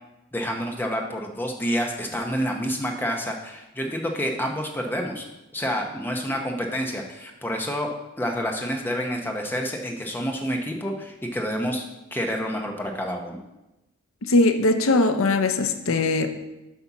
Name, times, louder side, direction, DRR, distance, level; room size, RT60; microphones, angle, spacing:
voice 1, 0.3-5.2 5.5-7.9 8.2-11.8 12.1-13.4, equal, 10° left, 2 dB, 0.8 m, -28 dB
voice 2, 14.3-16.3, left 2 dB, 65° left, 8 dB, 0.7 m, -20 dB
8.1 x 4.3 x 5.9 m, 0.97 s
head